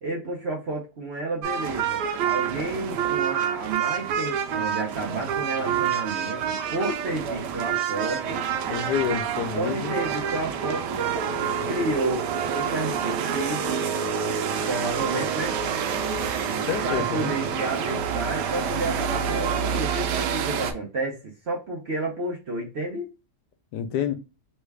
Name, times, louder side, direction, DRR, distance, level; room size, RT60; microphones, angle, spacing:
voice 1, 0.0-8.4 9.6-11.1 11.7-13.9 14.6-15.6 16.8-21.2 21.5-23.1, right 2 dB, 55° right, 0.8 m, -31 dB
sound 1, 1.4-20.7, right 7 dB, 90° right, 1.2 m, -27 dB
voice 2, 8.7-9.9 16.7-17.3 23.7-24.2, left 8 dB, 80° left, 1.2 m, -28 dB
3.2 x 2.3 x 3.2 m
omnidirectional pair, 1.8 m